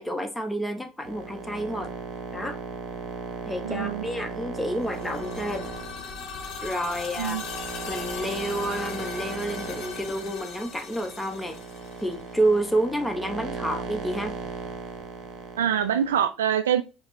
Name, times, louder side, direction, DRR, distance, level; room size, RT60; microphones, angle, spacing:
voice 1, 0.0-1.9 2.3-2.6 3.4-5.7 6.6-7.4 7.9-11.6 12.0-14.3, right 1 dB, 10° left, 0.8 m, -29 dB
sound 1, 1.0-16.2, right 4 dB, 45° right, 0.9 m, -37 dB
voice 2, 3.6-4.1 7.2-7.4 15.6-16.8, right 9 dB, 80° right, 0.3 m, -24 dB
sound 2, 4.8-12.6, left 5 dB, 55° left, 0.8 m, -39 dB
4.8 x 2.1 x 3.2 m
hypercardioid pair, 65°, 0 cm